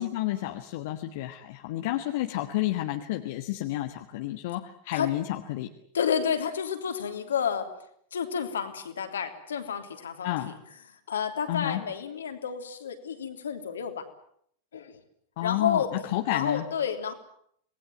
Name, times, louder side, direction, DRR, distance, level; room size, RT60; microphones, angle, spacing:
voice 1, 0.0-5.7 10.2-10.5 11.5-11.8 15.4-16.7, left 15 dB, 50° left, 5 dB, 1.6 m, -30 dB
voice 2, 5.9-7.7 8.1-10.5 11.1-14.0 14.7-15.0 15.4-15.9 16.3-17.1, left 7 dB, 65° left, 6 dB, 3.2 m, -30 dB
27.0 x 20.0 x 9.2 m, 0.68 s
figure-of-eight pair, 90°, 0 cm